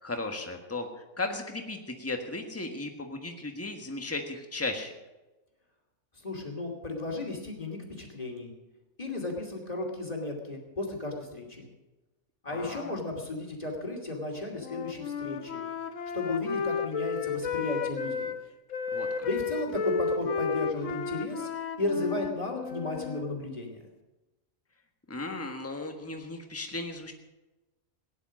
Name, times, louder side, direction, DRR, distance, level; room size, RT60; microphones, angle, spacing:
voice 1, 0.0-4.9 12.5-12.9 18.9-19.3 25.1-27.1, left 2 dB, 10° left, 4 dB, 1.4 m, -36 dB
voice 2, 6.2-8.5 9.0-11.7 12.4-15.6 16.1-18.3 19.2-21.5 21.8-23.8, left 2 dB, 25° left, 1 dB, 2.8 m, -34 dB
Wind instrument woodwind instrument, 14.6-18.4 18.7-23.2, left 5 dB, 65° left, 1.3 m, -33 dB
17.5 x 10.5 x 6.3 m, 1.1 s
omnidirectional pair, 1.5 m